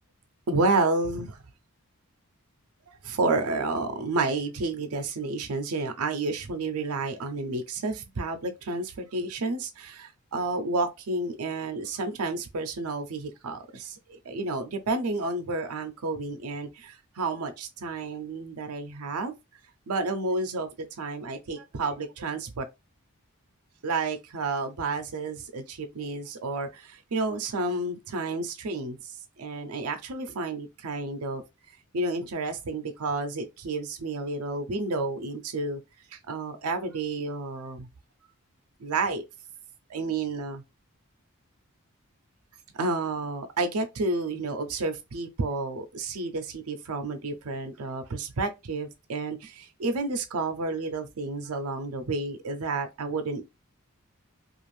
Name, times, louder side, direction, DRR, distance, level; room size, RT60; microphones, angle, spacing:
voice 1, 0.5-1.4 3.0-19.3 19.9-20.7 21.0-22.6 23.8-29.0 29.4-31.4 31.9-35.8 36.1-37.9 38.8-39.3 39.9-40.6 42.7-53.4, right 3 dB, 80° right, 0.6 m, -30 dB
2.5 x 2.4 x 3.1 m
head